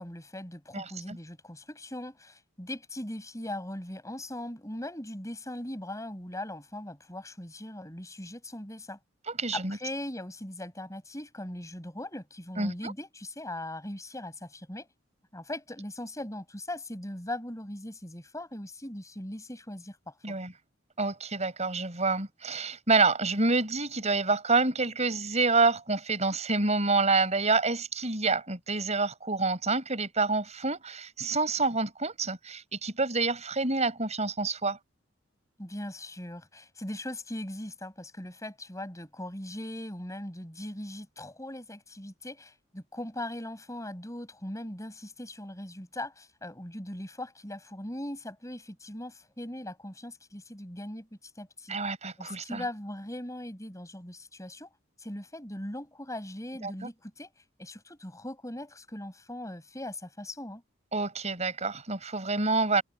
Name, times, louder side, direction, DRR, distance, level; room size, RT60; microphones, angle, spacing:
voice 1, 0.0-9.0 9.5-14.9 15.3-20.4 35.6-51.1 51.4-51.8 52.2-54.7 55.0-57.3 57.6-60.6, left 1 dB, 15° left, 6.9 m, -40 dB
voice 2, 0.7-1.2 9.3-9.8 12.6-12.9 20.2-20.5 21.0-34.8 51.7-52.6 56.6-56.7 60.9-62.8, right 3 dB, 35° right, 6.3 m, -27 dB
head